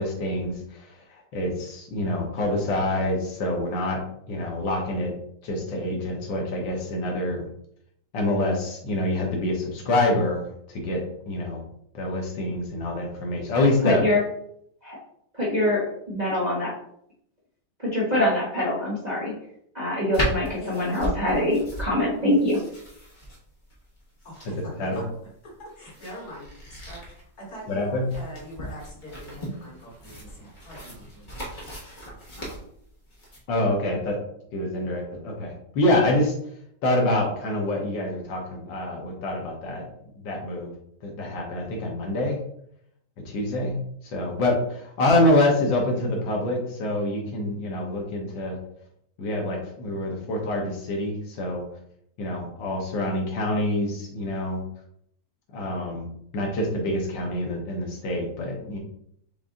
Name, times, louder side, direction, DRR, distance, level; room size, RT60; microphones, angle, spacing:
voice 1, 0.0-4.0 4.3-5.1 5.4-7.4 8.1-11.6 11.9-14.0 24.4-25.0 27.7-28.1 33.5-34.2 34.5-36.3 36.8-39.8 40.2-40.7 41.0-42.4 43.2-43.8 44.0-48.6 49.2-51.6 52.2-54.6 55.5-56.1 56.3-58.8, left 1 dB, 75° left, 0 dB, 1.7 m, -26 dB
voice 2, 13.8-14.2 14.8-15.0 15.3-16.7 17.8-19.3 19.7-22.6, left 1 dB, 30° right, -7 dB, 1.0 m, -24 dB
sound 1, 20.1-33.4, equal, 30° left, 1.2 m, -36 dB
voice 3, 24.2-25.1 25.4-31.3, equal, 55° left, -4 dB, 2.2 m, -42 dB
5.5 x 2.6 x 3.6 m, 0.71 s
omnidirectional pair, 2.0 m